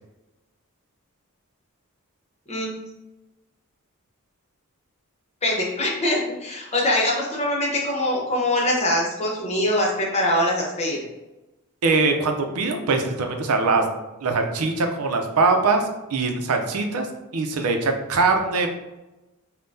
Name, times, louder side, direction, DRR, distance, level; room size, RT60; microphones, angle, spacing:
voice 1, 5.4-11.0, left 1 dB, 30° left, -3 dB, 0.9 m, -23 dB
voice 2, 11.8-13.8 14.2-17.1 17.3-18.7, right 3 dB, 90° right, 4 dB, 0.5 m, -22 dB
5.4 x 2.2 x 2.6 m, 1.0 s
head